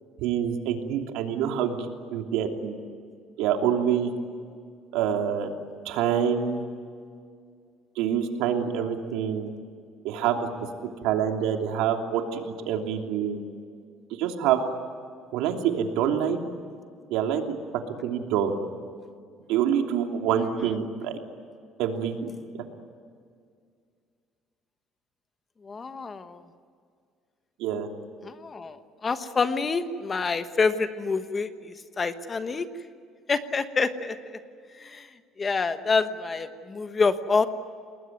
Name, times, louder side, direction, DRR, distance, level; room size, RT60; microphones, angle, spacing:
voice 1, 0.2-1.8 2.1-2.7 3.4-4.1 4.9-5.5 5.8-6.6 8.0-9.5 10.0-10.5 11.0-13.4 14.2-14.6 15.3-16.4 17.1-17.4 18.0-18.5 19.5-21.2 21.8-22.3 27.6-27.9, right 9 dB, 90° right, 3 dB, 3.0 m, -26 dB
voice 2, 25.6-26.4 28.2-32.7 33.3-34.2 34.8-35.1 35.4-37.5, left 4 dB, 20° left, 10 dB, 1.2 m, -27 dB
29.5 x 20.5 x 9.4 m, 2.2 s
cardioid pair, 160°, 0 cm